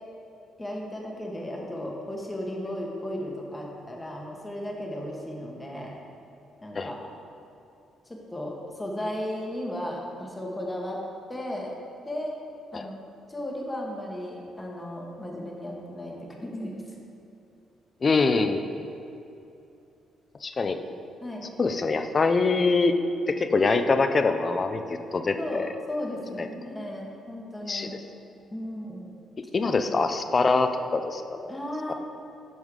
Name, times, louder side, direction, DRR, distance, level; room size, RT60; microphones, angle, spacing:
voice 1, 0.6-6.0 6.6-7.1 8.1-11.0 11.3-11.7 12.0-12.4 12.7-13.0 13.3-16.8 21.2-21.5 25.4-27.9 28.5-29.1 31.5-31.9, left 1 dB, 15° left, -1 dB, 1.2 m, -35 dB
voice 2, 18.0-18.7 20.4-20.8 21.6-23.0 23.3-24.8 25.1-25.7 26.4-26.5 27.7-28.0 29.5-31.5 31.9-32.0, left 4 dB, 35° left, 8 dB, 0.4 m, -24 dB
7.9 x 5.4 x 3.7 m, 2.7 s
cardioid pair, 90°, 0 cm